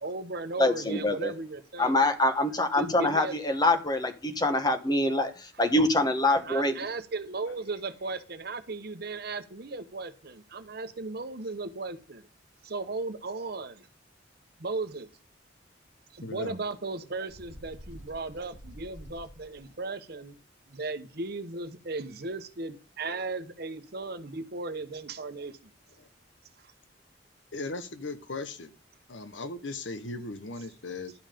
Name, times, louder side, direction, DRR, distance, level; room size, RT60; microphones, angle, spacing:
voice 1, 0.0-2.0 2.7-3.4 6.4-12.3 12.6-13.9 14.6-15.1 16.1-20.4 20.7-25.7, right 3 dB, 55° right, 9 dB, 0.9 m, -36 dB
voice 2, 0.6-1.3 1.8-6.7, left 1 dB, 20° left, 7 dB, 1.2 m, -25 dB
voice 3, 16.2-16.6 26.0-26.1 27.5-28.7 29.1-31.1, left 3 dB, 85° left, 10 dB, 1.1 m, -37 dB
Bird, 17.3-19.7, equal, 35° left, 2.5 m, -48 dB
11.5 x 5.6 x 5.1 m, 0.36 s
head